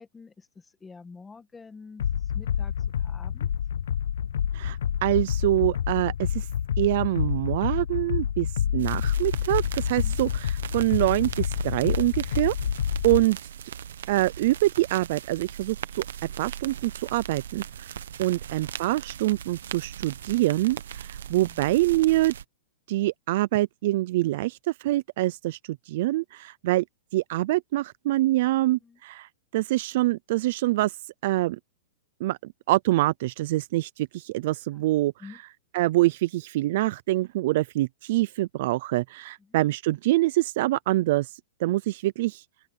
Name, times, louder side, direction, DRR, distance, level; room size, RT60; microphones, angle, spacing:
voice 1, 0.0-3.5 8.6-8.8 9.9-10.2 18.3-18.4 21.2-21.6 28.8-29.0 34.7-34.9 35.2-35.4 39.5-39.6, left 4 dB, 10° left, 1.9 m, -48 dB
sound 1, 2.0-13.3, left 9 dB, 80° left, 0.4 m, -28 dB
voice 2, 4.5-6.5 6.8-8.5 8.7-12.5 13.0-13.4 14.1-16.0 16.4-17.9 18.2-22.3 22.9-26.8 27.1-31.0 31.2-31.6 32.2-35.1 35.7-41.3 41.6-42.4, right 17 dB, 45° right, 0.4 m, -25 dB
sound 2, 8.8-22.4, right 9 dB, 80° right, 1.2 m, -39 dB
open air
supercardioid pair, 170°, 0 cm